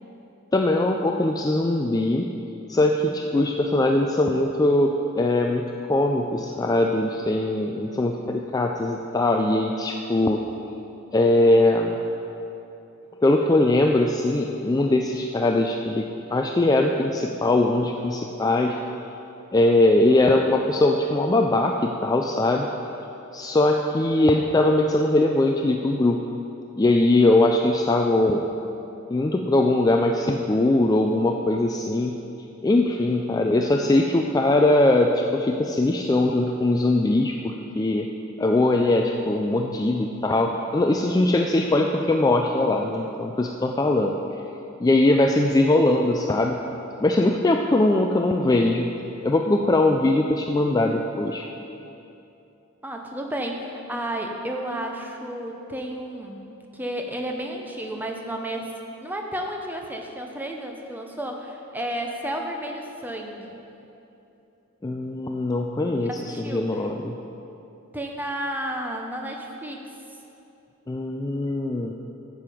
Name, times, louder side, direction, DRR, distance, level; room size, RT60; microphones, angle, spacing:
voice 1, 0.5-2.3 2.7-10.4 11.1-12.0 13.2-18.8 19.5-22.7 23.3-26.2 26.8-28.5 29.1-32.2 32.6-38.1 38.4-44.1 44.8-46.6 47.0-48.9 49.2-51.5 64.8-66.1 66.4-67.2 70.9-71.9, left 2 dB, 20° left, 2 dB, 0.3 m, -21 dB
voice 2, 52.8-58.7 59.0-63.6 66.0-66.9 67.9-69.8, right 1 dB, 10° right, 2 dB, 0.7 m, -32 dB
10.5 x 7.6 x 4.9 m, 2.9 s
head